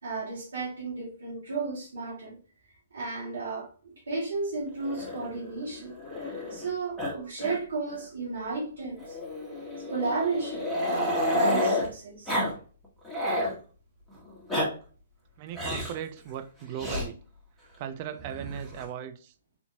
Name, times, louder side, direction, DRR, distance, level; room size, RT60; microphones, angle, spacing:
voice 1, 0.0-2.4 2.9-3.7 4.1-5.9 6.5-9.2 9.8-12.4, right 4 dB, 75° right, 1.6 m, -33 dB
Growling, 4.8-6.7 7.0-7.1 7.4-7.6 7.9-8.0 9.0-11.9 12.3-12.5 12.8-13.5 14.3-14.7 15.5-16.0 16.8-17.1 18.2-18.9, left 1 dB, ahead, 1.5 m, -30 dB
voice 2, 15.4-17.2 17.8-19.3, right 9 dB, 40° right, 0.5 m, -37 dB
4.3 x 2.7 x 2.7 m
figure-of-eight pair, 125°, 0 cm